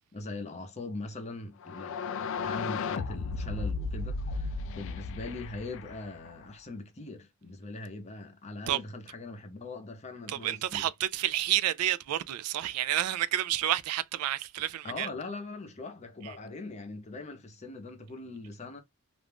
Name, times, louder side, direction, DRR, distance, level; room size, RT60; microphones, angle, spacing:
voice 1, 0.1-10.9 14.8-18.8, left 2 dB, 30° left, 0.7 m, -41 dB
sound 1, 1.6-6.5, left 4 dB, 60° left, 0.3 m, -35 dB
voice 2, 10.3-15.1, right 12 dB, 80° right, 0.3 m, -30 dB
2.5 x 2.3 x 3.3 m
head